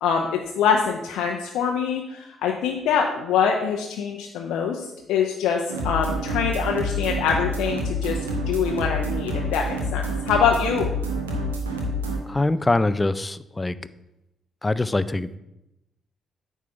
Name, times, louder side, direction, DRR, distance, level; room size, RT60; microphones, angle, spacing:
voice 1, 0.0-8.2 8.5-10.9, left 7 dB, 65° left, 1 dB, 0.6 m, -24 dB
sound 1, 5.7-12.2, equal, 80° right, 1.0 m, -27 dB
voice 2, 12.3-13.8 14.6-15.4, left 2 dB, 20° left, 15 dB, 0.4 m, -23 dB
9.3 x 3.7 x 6.8 m, 0.90 s
figure-of-eight pair, 40°, 0 cm